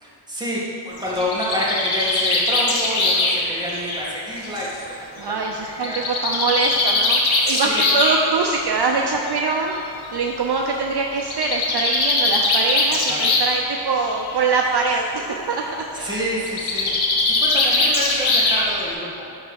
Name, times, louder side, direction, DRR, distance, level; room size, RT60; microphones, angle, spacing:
voice 1, 0.0-6.0 7.4-7.8 13.1-13.4 16.0-19.3, equal, 10° right, -6 dB, 1.9 m, -28 dB
Bird, 1.0-4.8 5.8-8.2 9.3-9.4 9.7-9.8 10.0-10.1 11.2-13.6 13.9-14.4 16.5-18.9, left 2 dB, 85° left, 1.2 m, -21 dB
voice 2, 5.2-9.7 10.1-15.6 15.9-16.1, right 4 dB, 55° right, 1 dB, 0.6 m, -23 dB
9.7 x 3.5 x 6.3 m, 2.6 s
wide cardioid pair, 100°, 47 cm